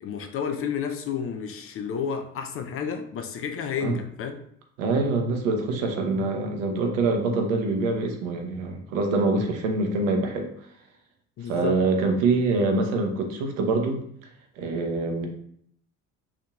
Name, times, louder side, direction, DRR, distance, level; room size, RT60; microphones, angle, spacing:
voice 1, 0.0-4.4 11.4-11.8, left 6 dB, 35° left, 5 dB, 0.5 m, -31 dB
voice 2, 4.8-10.5 11.4-14.0 14.6-15.3, right 3 dB, 65° right, 3 dB, 0.9 m, -25 dB
5.8 x 2.8 x 2.4 m, 0.67 s
figure-of-eight pair, 55°, 43 cm